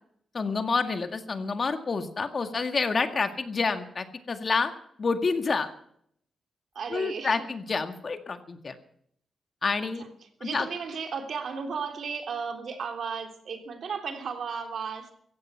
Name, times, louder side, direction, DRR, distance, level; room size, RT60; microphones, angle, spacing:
voice 1, 0.3-4.7 5.0-5.7 6.9-8.8 9.6-10.0 10.4-10.7, left 4 dB, 45° left, 8 dB, 1.9 m, -28 dB
voice 2, 6.7-7.5 10.0-10.1 10.4-15.1, right 5 dB, 70° right, 5 dB, 3.2 m, -34 dB
16.5 x 15.0 x 5.8 m, 0.67 s
cardioid pair, 100°, 0 cm